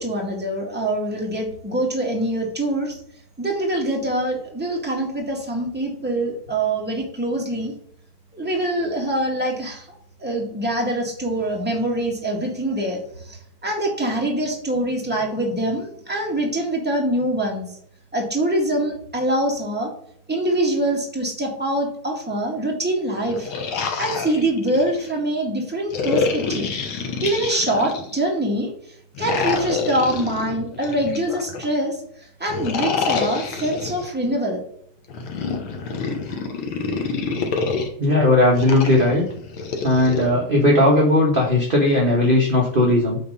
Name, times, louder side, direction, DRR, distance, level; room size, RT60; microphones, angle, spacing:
voice 1, 0.0-3.0 3.4-7.7 8.3-9.9 10.2-13.0 13.3-17.7 18.1-19.9 20.3-23.5 24.0-26.7 27.2-28.7 29.2-32.0 32.4-34.6, right 1 dB, 5° right, -1 dB, 1.7 m, -24 dB
sound 1, 23.2-25.1 25.9-28.3 29.1-31.7 32.5-34.1 35.1-37.9 38.6-40.2, left 5 dB, 80° left, 2.0 m, -27 dB
voice 2, 38.0-39.2 39.8-43.2, left 1 dB, 30° right, -3 dB, 1.4 m, -17 dB
8.5 x 3.8 x 5.1 m, 0.67 s
omnidirectional pair, 2.3 m